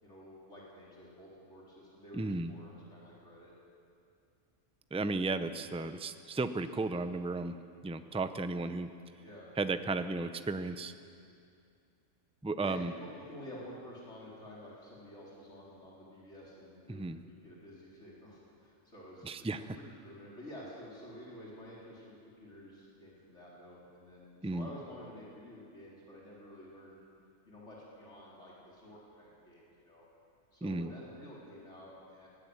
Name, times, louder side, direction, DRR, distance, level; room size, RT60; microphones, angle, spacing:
voice 1, 0.0-3.5 9.2-9.5 12.6-27.0 27.5-30.1 30.5-32.3, equal, 65° left, -6 dB, 4.4 m, -50 dB
voice 2, 2.1-2.5 4.9-7.6 7.8-8.9 9.6-10.9 12.4-12.9 16.9-17.2 19.2-19.8 24.4-24.7 30.6-30.9, right 3 dB, 10° right, 10 dB, 0.4 m, -34 dB
19.0 x 15.0 x 9.7 m, 2.4 s
omnidirectional pair, 1.3 m